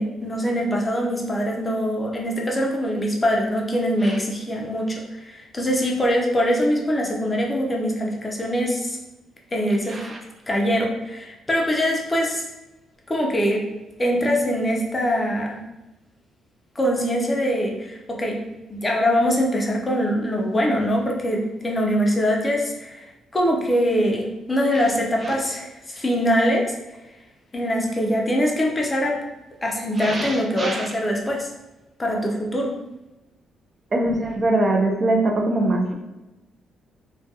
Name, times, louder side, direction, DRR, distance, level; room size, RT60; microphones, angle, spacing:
voice 1, 0.0-9.0 9.5-10.0 10.5-12.5 13.1-13.7 14.0-15.6 16.8-18.4 18.7-23.1 23.3-26.7 27.5-29.2 29.6-31.5 32.0-32.7, equal, 20° left, 0 dB, 0.5 m, -23 dB
voice 2, 30.0-30.9 33.9-35.9, right 2 dB, 35° right, 1 dB, 0.4 m, -23 dB
2.2 x 2.2 x 2.7 m, 1.0 s
cardioid pair, 90°, 0 cm